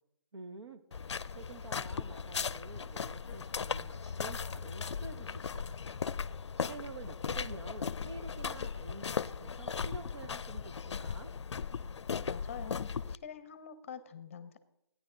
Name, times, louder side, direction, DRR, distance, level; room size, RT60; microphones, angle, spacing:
voice 1, 0.3-6.0 6.6-11.3, right 3 dB, 75° right, 10 dB, 1.4 m, -49 dB
sound 1, 0.9-13.2, left 6 dB, 85° left, 0.5 m, -37 dB
voice 2, 12.3-14.6, left 7 dB, 30° left, 13 dB, 0.7 m, -46 dB
14.5 x 9.7 x 3.8 m, 0.79 s
hypercardioid pair, 165°, 14 cm